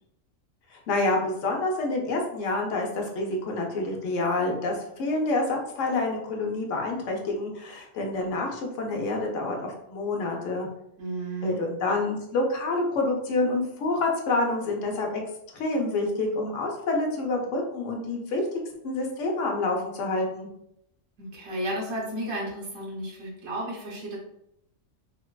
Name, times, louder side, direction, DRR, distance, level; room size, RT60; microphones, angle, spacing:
voice 1, 0.7-10.7 11.4-15.2 15.5-18.4 18.8-20.5, left 2 dB, 80° left, 1 dB, 1.0 m, -28 dB
voice 2, 11.0-11.6 21.2-24.2, right 1 dB, 85° right, -4 dB, 1.3 m, -33 dB
3.1 x 2.1 x 2.2 m, 0.78 s
omnidirectional pair, 1.3 m